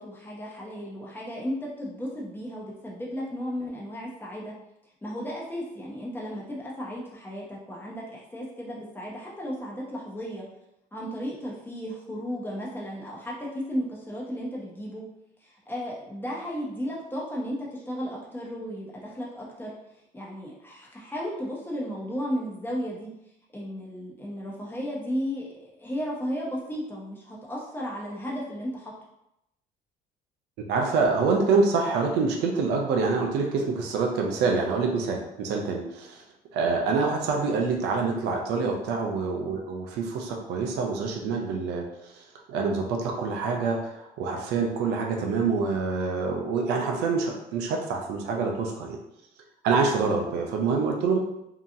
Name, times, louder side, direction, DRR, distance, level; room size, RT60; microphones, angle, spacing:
voice 1, 0.0-4.5 5.0-10.4 10.9-15.0 15.4-19.7 20.1-23.1 23.5-28.9 38.6-38.8, equal, 10° left, -4 dB, 0.8 m, -34 dB
voice 2, 30.7-36.2 36.5-42.2 42.5-49.0 49.6-51.2, right 4 dB, 85° right, 1 dB, 0.5 m, -26 dB
2.8 x 2.3 x 2.6 m, 0.83 s
cardioid pair, 110°, 17 cm